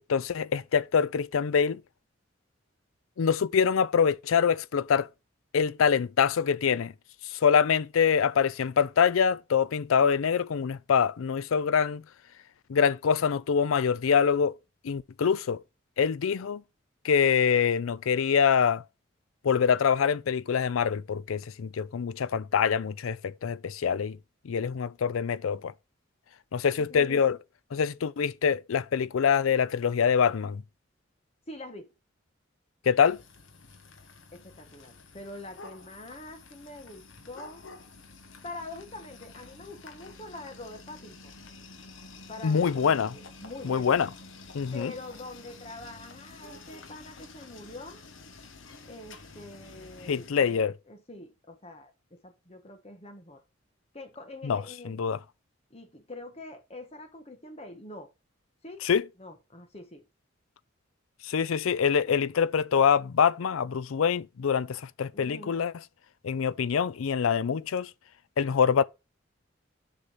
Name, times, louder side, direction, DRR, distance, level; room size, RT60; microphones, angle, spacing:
voice 1, 0.0-1.8 3.2-5.1 5.5-6.9 7.3-12.0 12.7-14.5 14.8-15.6 16.0-16.6 17.0-18.8 19.4-24.2 24.5-25.7 26.5-27.4 27.7-30.6 32.9-33.2 42.4-43.1 43.7-44.1 44.5-44.9 50.1-50.7 54.4-54.6 54.9-55.2 58.8-59.0 61.3-65.7 66.2-67.9 68.4-68.8, left 7 dB, 90° left, 0.4 m, -25 dB
voice 2, 26.8-27.2 31.5-31.9 34.3-37.6 38.4-41.3 42.3-44.0 44.7-48.0 48.9-53.4 53.9-55.0 55.7-58.1 58.6-58.9 59.2-60.1 65.1-65.5, left 2 dB, 30° left, 1.3 m, -45 dB
sound 1, 33.0-50.3, left 3 dB, 70° left, 1.2 m, -49 dB
6.8 x 5.7 x 4.9 m
head